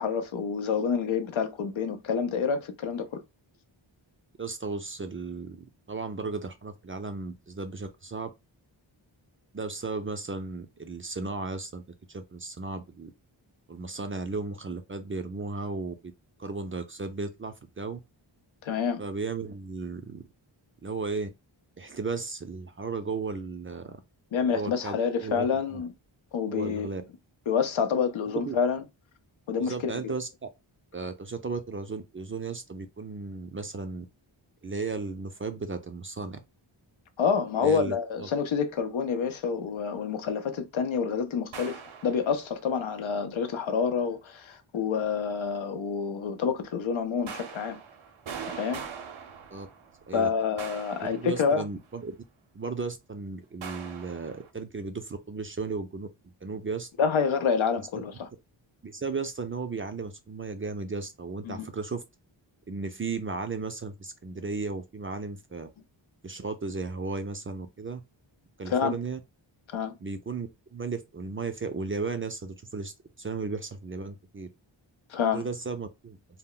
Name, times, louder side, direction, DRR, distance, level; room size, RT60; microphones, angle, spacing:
voice 1, 0.0-3.2 18.6-19.0 24.3-25.9 26.3-26.9 27.5-28.8 29.5-30.1 37.2-47.8 48.5-48.8 50.1-51.6 57.0-58.3 61.5-61.7 68.7-68.9 69.7-70.0 75.1-75.4, left 6 dB, 75° left, 0.6 m, -28 dB
voice 2, 4.4-8.3 9.5-11.8 12.1-13.1 13.7-15.9 16.4-18.0 19.0-20.2 20.8-21.3 21.8-24.0 24.5-24.9 25.2-25.5 25.7-25.8 26.5-27.0 28.3-28.6 29.6-30.5 30.9-34.1 34.6-36.4 37.6-38.3 49.5-49.7 50.1-50.3 51.0-52.1 52.5-56.1 56.4-56.9 58.8-62.0 62.7-65.7 66.2-68.0 68.6-69.2 70.0-74.5 75.3-76.2, right 4 dB, 30° right, 0.4 m, -35 dB
sound 1, 41.5-42.6 47.3-50.1 50.6-51.9 53.6-54.5, right 6 dB, 80° right, 0.6 m, -42 dB
2.2 x 2.1 x 3.7 m
wide cardioid pair, 60°, 47 cm